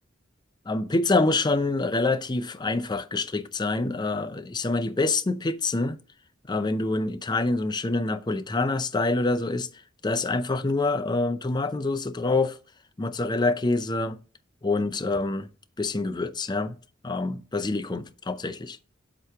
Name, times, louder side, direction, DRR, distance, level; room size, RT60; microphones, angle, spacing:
voice 1, 0.7-6.0 6.5-9.7 10.0-12.6 13.0-14.2 14.6-15.5 15.8-16.8 17.0-18.8, left 2 dB, 20° left, 0.5 m, -26 dB
7.9 x 3.0 x 5.7 m
head